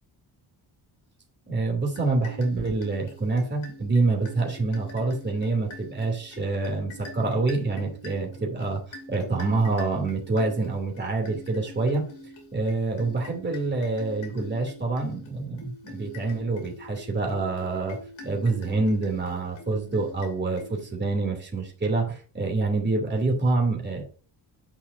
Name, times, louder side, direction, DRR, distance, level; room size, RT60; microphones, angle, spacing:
voice 1, 1.5-8.8 9.1-12.0 12.5-18.0 18.2-24.0, right 3 dB, 25° right, 0 dB, 2.8 m, -26 dB
sound 1, 1.9-21.1, left 1 dB, 85° left, 2.8 m, -45 dB
10.5 x 5.5 x 2.6 m, 0.39 s
cardioid pair, 125°, 45 cm